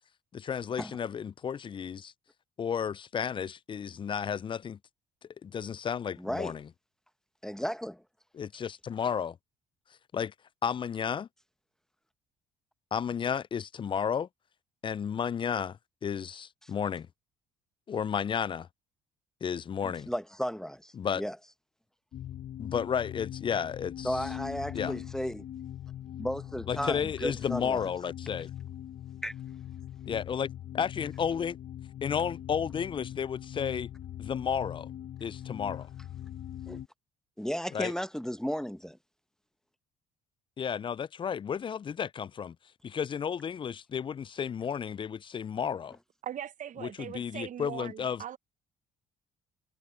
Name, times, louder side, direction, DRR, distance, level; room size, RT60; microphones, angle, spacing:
voice 1, 0.3-2.1 2.6-4.8 5.4-6.7 8.3-9.4 10.1-10.3 10.6-11.3 12.9-14.3 14.8-17.1 17.9-18.7 19.4-20.1 20.9-21.2 22.6-24.2 24.7-24.9 26.7-28.5 30.1-30.5 30.7-31.6 32.0-33.9 34.2-34.9 35.2-35.9 37.7-37.9 40.6-42.6 42.8-46.0 46.8-48.2, left 7 dB, 30° left, 0.4 m, -32 dB
voice 2, 6.2-6.5 7.4-8.0 19.8-21.4 24.0-25.5 26.2-27.8 29.2-29.3 36.7-36.8 37.4-39.0, equal, 5° left, 1.2 m, -34 dB
sound 1, 22.1-36.9, left 11 dB, 55° left, 1.0 m, -41 dB
voice 3, 46.2-48.4, right 10 dB, 55° right, 0.9 m, -40 dB
hypercardioid pair, 60°, 16 cm